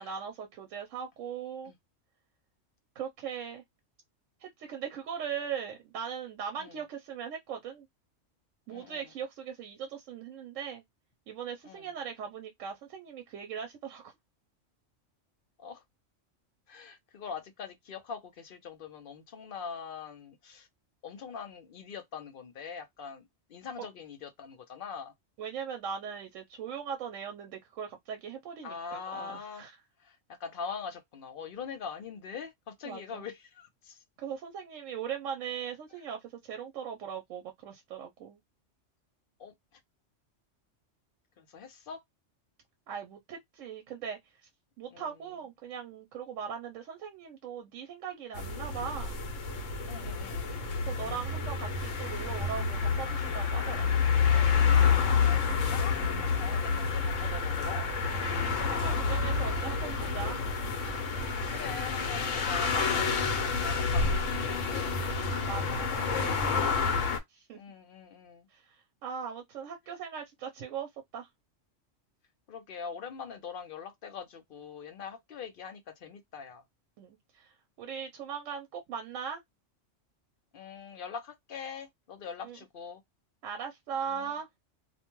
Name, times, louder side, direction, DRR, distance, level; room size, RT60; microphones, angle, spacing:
voice 1, 0.0-1.7 3.0-3.6 4.4-7.9 8.7-10.8 11.3-14.1 23.8-23.9 25.4-29.7 32.8-33.3 34.2-38.4 42.9-44.2 44.8-49.2 50.8-53.9 56.4-56.6 58.1-60.4 65.5-66.7 67.3-67.6 68.5-71.3 77.0-77.5 77.8-79.4 82.4-82.6 83.4-84.5, right 7 dB, 85° right, 1.0 m, -39 dB
voice 2, 8.7-9.1 11.6-11.9 15.6-15.8 16.7-20.7 21.0-23.2 23.5-25.1 28.6-29.7 30.0-34.0 39.4-39.5 41.4-42.0 44.9-45.2 49.9-50.7 54.7-57.9 58.2-58.7 61.5-65.2 67.5-68.5 72.5-76.6 80.5-83.0 84.0-84.3, left 6 dB, 55° left, 0.7 m, -43 dB
sound 1, 48.3-67.2, left 5 dB, 85° left, 1.1 m, -29 dB
2.5 x 2.2 x 2.9 m
omnidirectional pair, 1.3 m